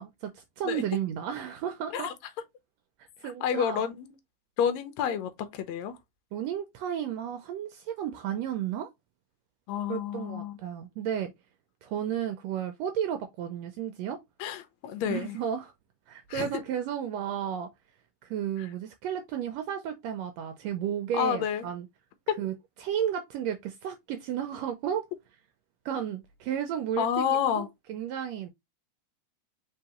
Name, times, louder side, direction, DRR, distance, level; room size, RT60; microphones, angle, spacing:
voice 1, 0.0-2.1 3.2-3.9 6.3-8.9 9.9-11.3 11.8-14.2 15.1-15.7 16.1-17.7 18.2-21.9 22.4-22.5 22.8-25.0 25.8-27.2 27.5-28.5, right 9 dB, 80° right, 1.6 m, -33 dB
voice 2, 3.4-4.1 4.6-6.0 9.7-10.6 14.4-15.4 16.3-16.5 18.6-18.7 21.1-21.7 22.3-22.4 27.0-27.7, left 8 dB, 75° left, 1.9 m, -29 dB
4.6 x 3.4 x 2.9 m
omnidirectional pair, 3.3 m